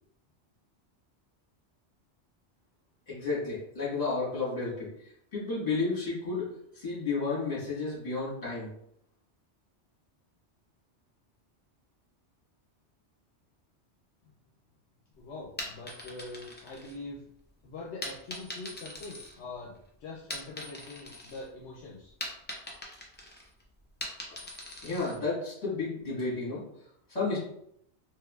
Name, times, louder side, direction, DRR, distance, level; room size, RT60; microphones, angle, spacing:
voice 1, 3.1-4.9 5.3-6.4 6.7-8.7 24.8-26.6 27.1-27.4, left 3 dB, 35° left, -6 dB, 1.6 m, -32 dB
voice 2, 15.2-17.2 17.6-19.8 20.0-22.1, left 3 dB, 75° left, -3 dB, 0.9 m, -43 dB
sound 1, 15.4-17.4 18.0-19.8 20.1-21.5 21.8-25.2, left 1 dB, 15° left, 0.3 m, -42 dB
3.5 x 3.1 x 2.3 m, 0.73 s
omnidirectional pair, 1.2 m